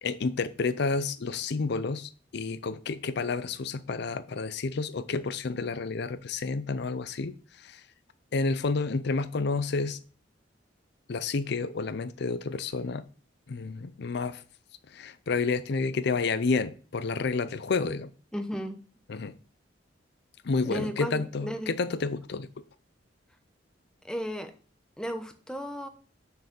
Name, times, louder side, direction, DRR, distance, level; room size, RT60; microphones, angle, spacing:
voice 1, 0.0-7.3 7.6-7.8 8.3-10.0 11.1-13.0 13.5-14.4 14.9-18.1 19.1-19.3 20.4-22.5, left 4 dB, 60° left, 0.5 m, -30 dB
voice 2, 18.3-18.8 20.6-21.7 24.0-24.5 25.0-25.9, equal, 5° left, 0.9 m, -34 dB
6.4 x 4.7 x 6.8 m
head